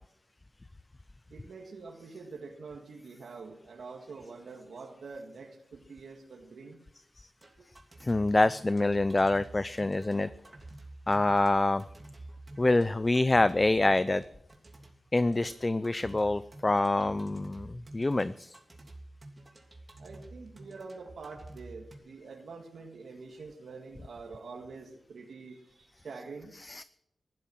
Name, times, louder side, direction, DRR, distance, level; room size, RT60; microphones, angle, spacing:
voice 1, 1.3-6.8 7.6-7.7 20.0-26.5, right 4 dB, 90° right, 0 dB, 1.8 m, -46 dB
sound 1, 7.4-22.0, right 2 dB, 25° right, 3.0 m, -50 dB
voice 2, 8.0-10.3 11.1-11.8 12.6-14.2 15.1-18.6 26.6-26.8, left 2 dB, 25° left, 15 dB, 0.5 m, -26 dB
15.5 x 12.0 x 6.2 m, 0.80 s
wide cardioid pair, 100°, 0 cm